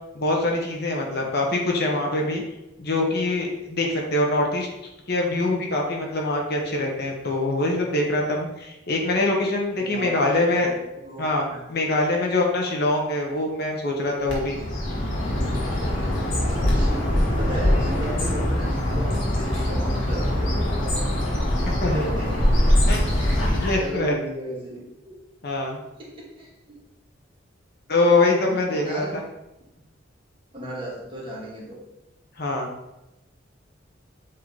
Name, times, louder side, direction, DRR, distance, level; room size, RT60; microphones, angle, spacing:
voice 1, 0.1-2.4 2.8-4.7 5.1-10.7 11.2-14.6 21.8-22.1 22.9-23.2 23.5-24.1 25.4-25.8 27.9-29.2 32.4-32.7, left 2 dB, 55° left, 0 dB, 1.1 m, -24 dB
voice 2, 9.8-10.6 11.0-11.8 16.6-22.5 23.3-25.2 26.0-26.8 28.4-29.2 30.5-31.8, right 1 dB, 25° right, -4 dB, 1.6 m, -36 dB
Bird, 14.3-24.0, left 1 dB, 90° left, 1.9 m, -23 dB
7.6 x 3.0 x 4.1 m, 0.93 s
head